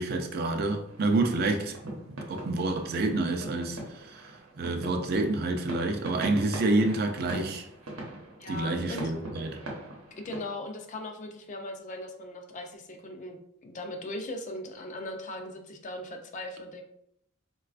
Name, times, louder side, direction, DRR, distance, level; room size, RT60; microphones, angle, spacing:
voice 1, 0.0-4.2 4.6-7.6 8.5-9.6, right 2 dB, 50° right, 0.4 m, -28 dB
sound 1, 0.8-10.4, right 1 dB, 80° right, 0.8 m, -42 dB
voice 2, 8.4-9.1 10.2-16.8, left 1 dB, 35° left, 0.4 m, -39 dB
3.9 x 2.3 x 2.4 m
head